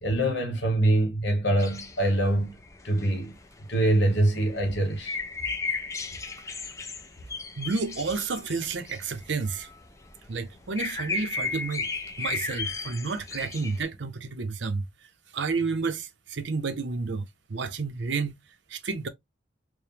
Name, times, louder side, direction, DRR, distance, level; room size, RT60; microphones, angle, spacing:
voice 1, 0.0-3.3 3.7-5.2, right 1 dB, 60° left, 1.3 m, -24 dB
sound 1, 1.6-13.8, left 4 dB, 15° left, 0.4 m, -35 dB
voice 2, 7.6-9.7 10.3-11.9 12.2-14.8 15.3-18.4 18.7-19.1, right 4 dB, 65° right, 0.6 m, -30 dB
4.6 x 2.1 x 3.3 m
head